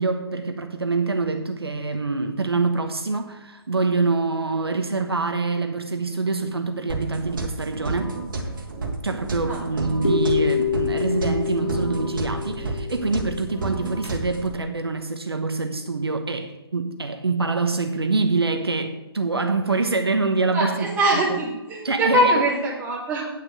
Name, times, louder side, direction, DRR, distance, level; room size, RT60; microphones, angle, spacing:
voice 1, 0.0-8.2 9.0-20.9 21.8-22.3, right 3 dB, 70° right, 1.1 m, -25 dB
sound 1, 6.9-14.6, right 2 dB, 50° right, 1.9 m, -31 dB
sound 2, 10.0-14.1, left 7 dB, 85° left, 2.7 m, -27 dB
voice 2, 20.5-23.3, right 1 dB, 10° right, 2.5 m, -22 dB
9.0 x 6.0 x 7.5 m
figure-of-eight pair, 135°, 13 cm